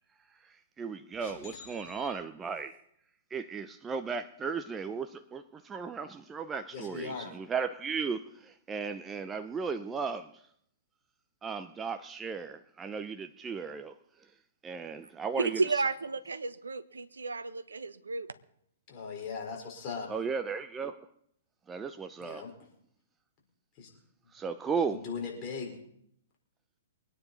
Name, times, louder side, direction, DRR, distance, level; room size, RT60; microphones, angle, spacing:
voice 1, 0.4-2.8 3.3-10.3 11.4-13.9 14.6-15.6 20.1-21.1 21.7-22.4 24.3-25.0, right 5 dB, 15° right, 0.7 m, -35 dB
voice 2, 1.2-2.1 6.7-7.3 18.9-20.1 22.2-22.5 23.8-23.9 24.9-25.8, left 5 dB, 35° left, 4.7 m, -39 dB
voice 3, 15.4-18.3, right 4 dB, 85° right, 1.1 m, -32 dB
24.0 x 9.6 x 4.2 m
hypercardioid pair, 120°, 0 cm